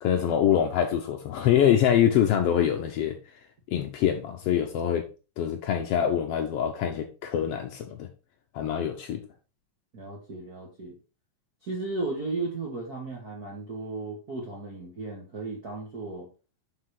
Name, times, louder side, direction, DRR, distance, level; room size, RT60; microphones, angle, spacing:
voice 1, 0.0-3.2 3.7-5.1 5.4-8.1 8.5-9.2, left 9 dB, 85° left, 1.3 m, -24 dB
voice 2, 9.9-11.0 11.6-16.3, right 3 dB, 40° right, 1.4 m, -35 dB
6.0 x 5.8 x 4.7 m
omnidirectional pair, 3.8 m